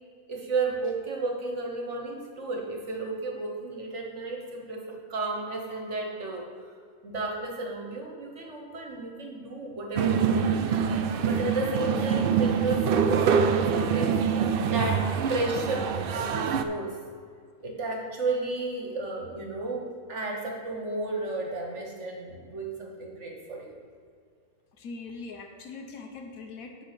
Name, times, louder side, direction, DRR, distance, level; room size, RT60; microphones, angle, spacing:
voice 1, 0.3-6.4 7.0-10.8 11.2-17.0 17.6-23.8, right 2 dB, 55° right, 0 dB, 1.6 m, -33 dB
sound 1, 10.0-16.6, right 7 dB, 75° right, 0.5 m, -25 dB
voice 2, 24.8-26.8, left 4 dB, 75° left, 3 dB, 1.4 m, -41 dB
10.0 x 3.9 x 6.7 m, 2.2 s
omnidirectional pair, 1.5 m